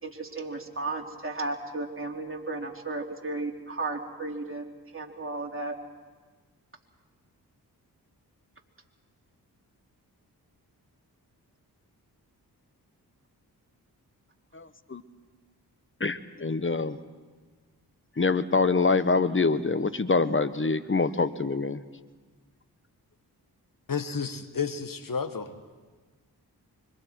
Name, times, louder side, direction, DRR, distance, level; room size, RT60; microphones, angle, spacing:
voice 1, 0.0-4.6 4.9-5.7, right 2 dB, 30° right, 1 dB, 3.1 m, -34 dB
voice 2, 14.5-15.0 16.0-17.0 18.2-21.8, left 4 dB, 30° left, 13 dB, 1.1 m, -25 dB
voice 3, 23.9-25.6, left 5 dB, 55° left, 10 dB, 1.4 m, -31 dB
25.0 x 24.0 x 4.7 m, 1.4 s
cardioid pair, 40°, 40 cm